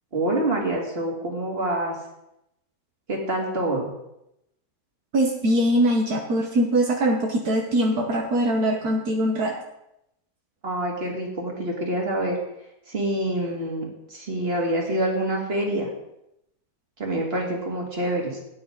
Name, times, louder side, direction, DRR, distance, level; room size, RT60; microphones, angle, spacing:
voice 1, 0.1-2.0 3.1-3.9 10.6-12.4 12.9-15.9 17.0-18.4, right 1 dB, 40° right, 0 dB, 2.7 m, -26 dB
voice 2, 5.1-9.5, right 1 dB, 75° right, 1 dB, 1.7 m, -22 dB
17.0 x 9.6 x 3.9 m, 0.83 s
omnidirectional pair, 1.6 m